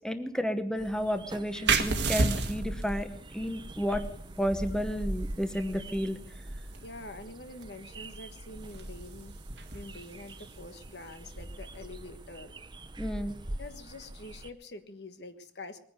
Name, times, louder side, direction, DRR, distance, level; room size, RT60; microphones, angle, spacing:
voice 1, 0.0-3.1 3.3-4.0 4.4-6.2 13.0-13.4, equal, 5° left, 9 dB, 1.0 m, -31 dB
sound 1, 0.8-14.5, right 1 dB, 25° right, 0.7 m, -42 dB
sound 2, 1.6-12.9, right 3 dB, 85° right, 1.8 m, -35 dB
voice 2, 6.8-9.3 9.7-12.5 13.6-15.8, left 2 dB, 70° left, 9 dB, 1.4 m, -46 dB
21.0 x 10.0 x 6.7 m, 0.63 s
head